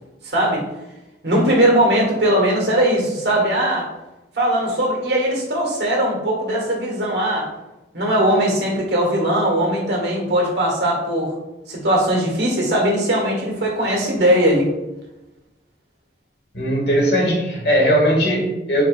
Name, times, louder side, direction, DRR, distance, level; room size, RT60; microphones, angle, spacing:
voice 1, 0.2-0.7 1.2-3.9 4.3-7.5 7.9-11.3 11.7-14.7, right 1 dB, 75° right, -2 dB, 1.5 m, -19 dB
voice 2, 16.5-18.8, equal, 65° left, 0 dB, 1.2 m, -18 dB
4.8 x 4.5 x 2.3 m, 1.0 s
head